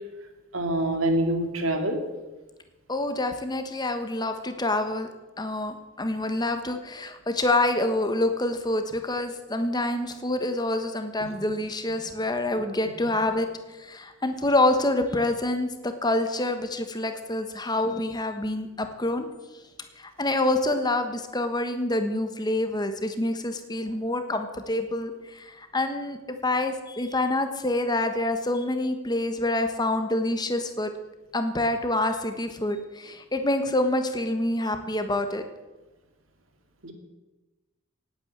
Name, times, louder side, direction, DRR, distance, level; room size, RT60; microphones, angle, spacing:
voice 1, 0.5-2.0 11.2-11.3 36.8-36.9, right 1 dB, 80° right, 5 dB, 2.4 m, -26 dB
voice 2, 2.9-5.1 5.4-13.5 13.8-19.3 20.0-30.9 31.3-35.4, left 2 dB, 20° left, 7 dB, 1.3 m, -27 dB
17.5 x 9.1 x 7.4 m, 1.1 s
head